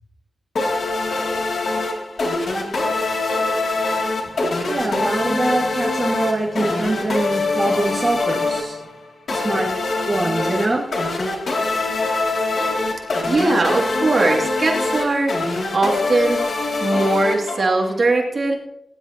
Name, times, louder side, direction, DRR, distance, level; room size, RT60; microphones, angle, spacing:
sound 1, 0.6-18.0, left 3 dB, 80° left, 2.7 m, -23 dB
voice 1, 4.6-8.8 9.3-9.7 10.1-10.9, right 2 dB, 20° right, -3 dB, 2.0 m, -23 dB
voice 2, 13.3-15.4 15.7-16.5 16.8-18.6, right 2 dB, 45° right, 0 dB, 2.5 m, -20 dB
18.0 x 11.5 x 2.9 m, 0.79 s
wide cardioid pair, 135°, 0 cm